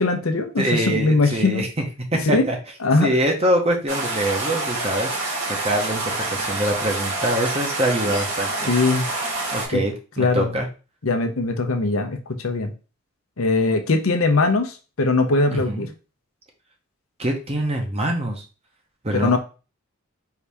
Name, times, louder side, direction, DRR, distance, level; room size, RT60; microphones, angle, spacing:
voice 1, 0.0-1.6 2.3-2.4 2.8-3.1 8.7-9.1 9.7-9.8 10.2-10.5 11.0-12.2 12.4-12.7 13.4-15.9 19.1-19.4, left 3 dB, 75° left, 6 dB, 0.7 m, -20 dB
voice 2, 0.6-1.8 2.1-2.6 3.0-5.2 5.4-8.7 9.5-10.7 15.5-15.9 17.2-18.4 19.0-19.4, right 1 dB, 30° right, 2 dB, 0.9 m, -24 dB
sound 1, 3.9-9.7, right 2 dB, 85° right, 2.5 m, -27 dB
4.6 x 2.8 x 3.4 m, 0.33 s
head